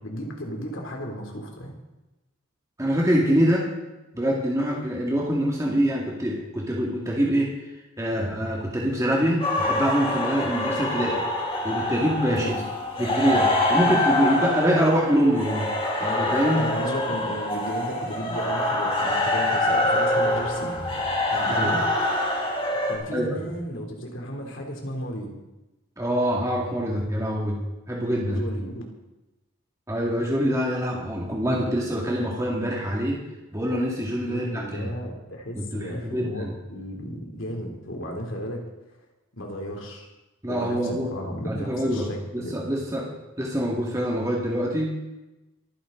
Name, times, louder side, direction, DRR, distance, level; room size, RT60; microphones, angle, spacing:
voice 1, 0.0-1.7 12.3-12.6 13.8-13.9 16.6-20.8 21.3-21.8 22.9-25.3 28.3-28.8 34.2-38.6 39.3-40.1 40.5-42.6, equal, 65° left, 1 dB, 3.1 m, -34 dB
voice 2, 2.8-3.7 4.1-7.5 8.0-11.2 11.6-12.5 13.0-15.7 16.0-16.6 21.5-21.8 23.1-23.4 26.0-28.4 29.9-33.2 33.5-34.9 35.6-36.5 40.4-41.1 41.5-43.1 43.4-44.9, equal, 15° right, -3 dB, 2.2 m, -25 dB
sound 1, 9.4-23.0, left 1 dB, 25° left, 3.2 m, -25 dB
24.5 x 10.0 x 3.9 m, 1.0 s
head